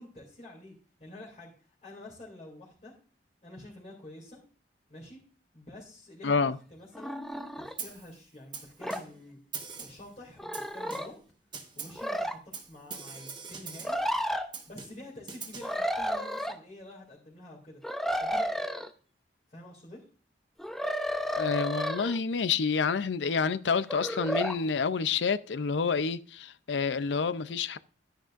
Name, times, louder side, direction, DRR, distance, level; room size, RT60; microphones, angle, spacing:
voice 1, 0.0-2.9 3.4-4.4 4.9-5.2 5.5-7.2 7.6-9.4 9.8-11.2 11.7-14.2 14.7-17.8 18.2-18.7 19.5-20.0, left 1 dB, 40° left, 2.8 m, -48 dB
voice 2, 6.2-6.6 21.4-27.8, left 5 dB, 80° left, 0.5 m, -28 dB
sound 1, 7.0-7.7 8.8-9.0 10.4-11.1 11.9-12.4 13.8-14.5 15.6-16.6 17.8-18.9 20.6-22.2 23.9-24.6, equal, ahead, 0.6 m, -32 dB
Snare drum, 7.8-8.1 8.5-9.2 9.5-10.1 10.5-11.2 11.5-12.1 12.5-14.1 14.5-15.8, right 5 dB, 25° right, 1.3 m, -42 dB
12.0 x 10.0 x 2.5 m
head